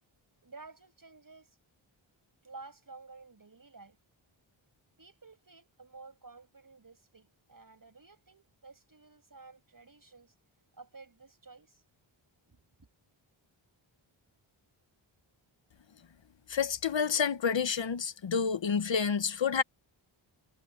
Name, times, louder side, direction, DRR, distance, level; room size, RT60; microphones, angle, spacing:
voice 1, 0.4-1.5 2.4-4.0 5.0-10.3 10.8-11.8 12.5-12.9, right 3 dB, 40° right, 7.9 m, -53 dB
voice 2, 16.5-19.6, left 6 dB, 65° left, 1.3 m, -29 dB
cardioid pair, 60°, 49 cm